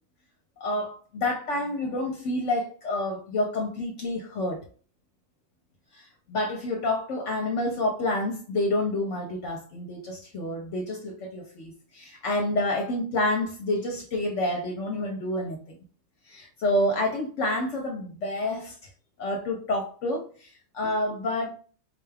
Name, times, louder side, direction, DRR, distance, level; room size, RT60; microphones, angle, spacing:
voice 1, 0.6-4.6 5.9-15.8 16.3-18.8 19.2-21.5, left 1 dB, 65° left, 0.9 m, -28 dB
4.2 x 2.3 x 3.3 m
omnidirectional pair, 1.4 m